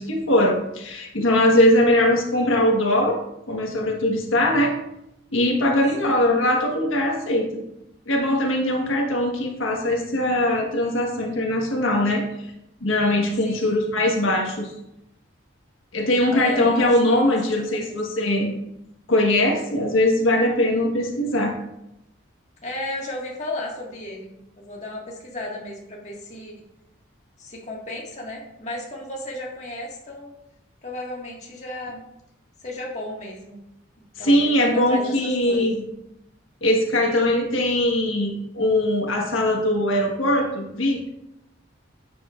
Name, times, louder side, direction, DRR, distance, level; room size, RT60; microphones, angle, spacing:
voice 1, 0.0-3.2 3.5-4.7 5.3-7.5 8.1-12.2 12.8-14.7 15.9-18.5 19.1-21.5 34.2-35.9 36.6-41.1, left 1 dB, 80° left, 0 dB, 1.5 m, -21 dB
voice 2, 6.0-6.3 13.4-13.8 16.3-18.0 22.6-26.5 27.4-30.3 30.8-32.0 32.6-33.6 34.2-35.7, left 1 dB, 35° left, -3 dB, 1.8 m, -35 dB
11.0 x 7.7 x 2.5 m, 0.85 s
head